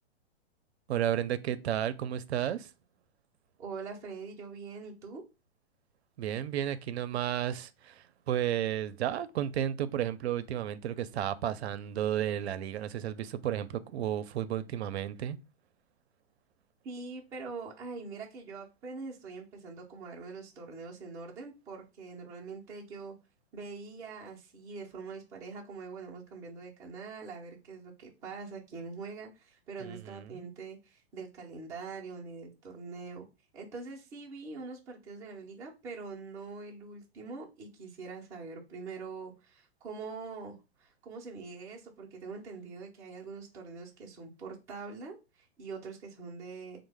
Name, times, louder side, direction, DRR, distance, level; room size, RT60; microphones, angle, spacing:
voice 1, 0.9-2.7 6.2-15.4 29.8-30.5, right 10 dB, 80° right, 0.5 m, -33 dB
voice 2, 3.6-5.2 16.8-23.1 23.5-33.2 33.5-46.8, right 4 dB, 10° right, 0.4 m, -44 dB
3.1 x 2.0 x 3.3 m
hypercardioid pair, 140°, 32 cm